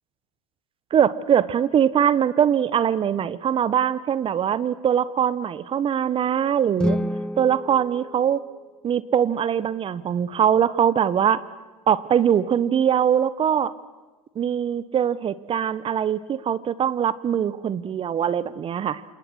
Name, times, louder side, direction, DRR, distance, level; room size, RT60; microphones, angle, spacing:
voice 1, 0.9-7.0 7.4-8.4 8.8-11.4 11.9-13.7 14.3-19.0, right 9 dB, 30° right, 17 dB, 1.2 m, -22 dB
sound 1, 6.7-8.9, left 1 dB, 5° left, 0.7 m, -30 dB
29.0 x 27.5 x 6.4 m, 1.2 s
hypercardioid pair, 85°, 18 cm